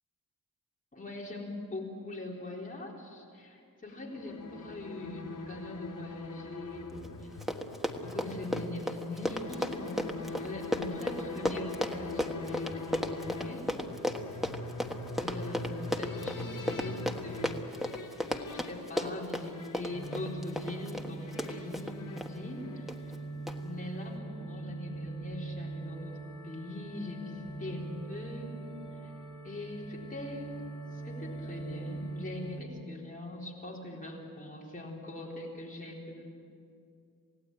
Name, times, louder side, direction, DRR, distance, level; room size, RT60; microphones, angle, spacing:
voice 1, 0.9-7.3 8.0-13.7 14.2-14.5 15.1-17.8 18.5-23.1 23.6-28.6 29.0-29.1 29.4-30.5 30.9-36.3, left 2 dB, 25° left, -3 dB, 4.0 m, -42 dB
sound 1, 3.9-22.9, left 3 dB, 65° left, 2.9 m, -43 dB
Run, 7.0-7.1 7.3-22.3 22.9-23.2 23.5-23.6, left 1 dB, ahead, 1.4 m, -34 dB
sound 2, 19.9-32.6, right 3 dB, 50° left, 4.1 m, -42 dB
28.0 x 17.5 x 9.1 m, 2.4 s
wide cardioid pair, 175°, 34 cm